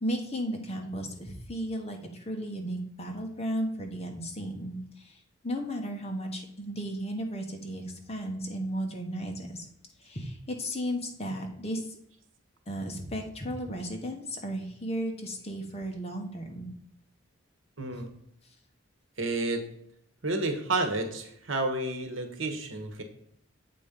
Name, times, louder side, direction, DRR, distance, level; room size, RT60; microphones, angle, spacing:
voice 1, 0.0-9.6 10.0-12.0 12.7-16.7, equal, 30° left, 3 dB, 1.2 m, -34 dB
voice 2, 17.8-18.1 19.2-19.7 20.2-23.0, right 2 dB, 70° right, 5 dB, 1.2 m, -30 dB
7.7 x 4.3 x 5.1 m, 0.74 s
head